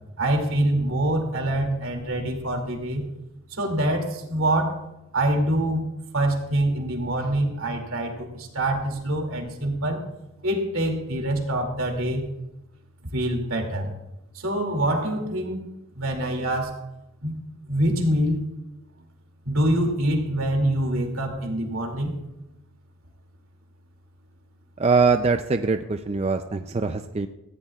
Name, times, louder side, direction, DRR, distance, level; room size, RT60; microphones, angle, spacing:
voice 1, 0.2-3.1 3.5-4.8 5.1-5.8 6.1-10.0 10.4-12.3 13.1-13.9 14.3-15.7 15.9-16.8 17.2-17.3 17.7-18.4 19.5-22.2, right 1 dB, 75° right, 3 dB, 2.6 m, -25 dB
voice 2, 24.8-27.3, right 4 dB, 30° right, 7 dB, 0.4 m, -22 dB
18.0 x 15.5 x 2.4 m, 0.94 s
head